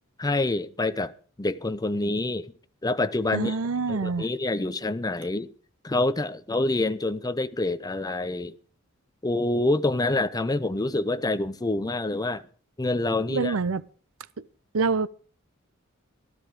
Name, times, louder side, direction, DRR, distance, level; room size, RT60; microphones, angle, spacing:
voice 1, 0.2-1.1 1.4-2.5 2.8-3.6 3.9-5.5 5.8-8.5 9.2-12.4 12.8-13.6, left 2 dB, 20° left, 0.6 m, -26 dB
voice 2, 3.3-4.3 13.3-13.8 14.7-15.1, right 4 dB, 75° right, 0.7 m, -26 dB
16.0 x 12.5 x 4.9 m
head